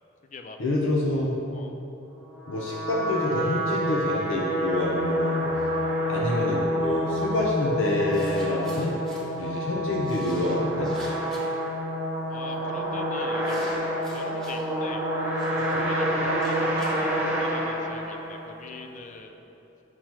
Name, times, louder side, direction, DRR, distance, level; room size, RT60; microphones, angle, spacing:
voice 1, 0.6-1.4 2.5-5.5 6.1-9.0 9.4-10.9 15.7-15.9, left 1 dB, 85° left, -3 dB, 0.6 m, -27 dB
sound 1, 2.3-18.6, equal, 10° right, 1.0 m, -28 dB
sound 2, 7.5-7.6 8.1-9.2 10.0-11.6 12.5-12.8 13.4-14.6 15.4-17.6, right 1 dB, 5° left, 1.5 m, -48 dB
voice 2, 12.3-13.9 14.1-15.1 15.5-19.3, left 3 dB, 40° left, 5 dB, 0.4 m, -41 dB
7.4 x 6.0 x 2.9 m, 3.0 s
head